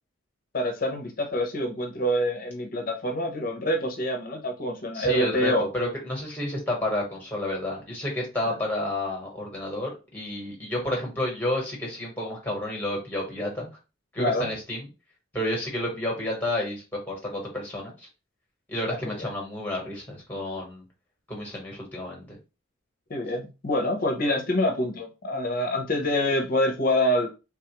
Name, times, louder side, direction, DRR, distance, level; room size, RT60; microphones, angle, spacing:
voice 1, 0.5-5.7 14.2-14.5 19.0-19.3 23.1-27.3, left 1 dB, 40° left, 0.6 m, -26 dB
voice 2, 4.9-13.7 14.1-14.9 15.3-18.1 18.7-20.8 21.3-22.4, left 1 dB, 10° left, 1.1 m, -30 dB
3.5 x 2.3 x 2.9 m
head